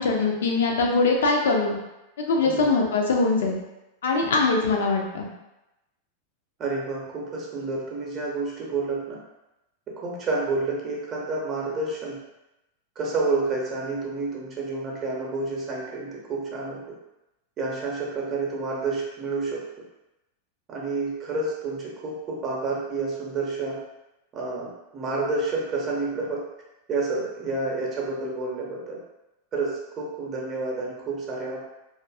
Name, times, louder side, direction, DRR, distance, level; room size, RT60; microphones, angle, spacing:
voice 1, 0.0-1.8 2.2-3.6 4.0-5.3, left 3 dB, 60° left, 1 dB, 0.4 m, -22 dB
voice 2, 6.6-9.2 10.0-12.2 13.0-16.8 17.6-19.6 20.7-23.8 24.3-26.4 26.9-29.0 29.5-31.6, right 3 dB, 30° right, -3 dB, 0.7 m, -29 dB
2.5 x 2.4 x 2.3 m, 0.95 s
figure-of-eight pair, 90°, 0 cm